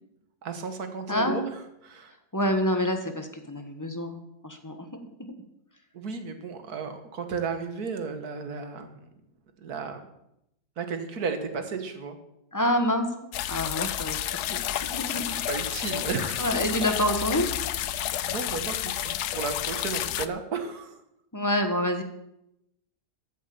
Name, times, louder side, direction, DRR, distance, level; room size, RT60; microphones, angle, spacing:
voice 1, 0.4-1.4 1.8-2.1 5.9-9.0 9.6-10.1 10.8-12.2 15.1-16.5 17.9-21.0, right 5 dB, 70° right, 7 dB, 1.9 m, -34 dB
voice 2, 1.1-1.4 2.3-4.9 5.2-5.3 12.5-14.2 14.5-14.6 14.9-15.4 16.4-17.5 21.3-22.0, left 1 dB, 15° left, 5 dB, 1.2 m, -27 dB
sound 1, 13.3-20.3, left 12 dB, 90° left, 1.2 m, -30 dB
14.0 x 7.4 x 6.9 m, 0.83 s
omnidirectional pair, 1.7 m